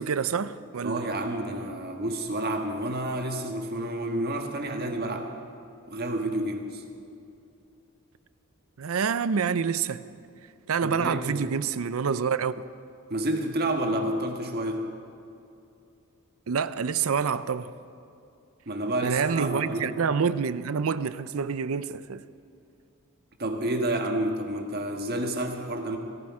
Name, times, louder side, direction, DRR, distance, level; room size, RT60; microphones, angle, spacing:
voice 1, 0.0-1.1 8.8-10.0 10.7-12.7 16.5-17.7 19.0-22.2, right 6 dB, 70° right, 0.5 m, -27 dB
voice 2, 0.8-5.3 5.9-6.8 10.8-11.5 13.1-14.8 18.7-20.0 23.4-26.0, right 1 dB, 45° right, 1.6 m, -29 dB
18.0 x 14.5 x 4.9 m
head